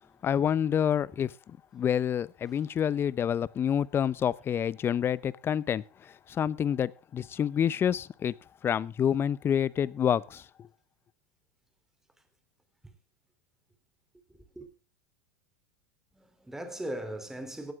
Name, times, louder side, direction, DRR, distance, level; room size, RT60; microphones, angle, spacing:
voice 1, 0.2-5.8 6.3-8.3 8.6-10.7, left 9 dB, 30° left, 0.7 m, -28 dB
voice 2, 14.3-14.7 16.1-17.7, right 1 dB, 5° right, 3.4 m, -39 dB
17.5 x 12.0 x 3.7 m
hypercardioid pair, 100°, 8 cm